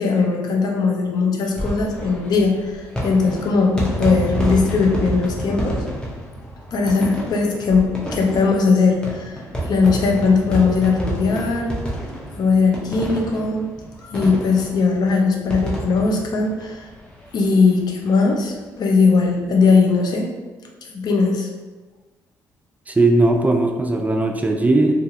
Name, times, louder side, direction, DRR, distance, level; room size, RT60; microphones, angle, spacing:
voice 1, 0.0-5.8 6.7-11.7 12.3-13.7 14.1-16.9 17.3-20.3 20.8-21.5, left 4 dB, 60° left, 1 dB, 0.5 m, -19 dB
sound 1, 1.4-17.5 17.8-17.9 18.1-18.2 19.4-19.7, equal, 10° left, 0.8 m, -29 dB
voice 2, 22.9-24.9, right 2 dB, 20° right, 3 dB, 0.3 m, -18 dB
2.4 x 2.3 x 2.8 m, 1.3 s
supercardioid pair, 55°, 8 cm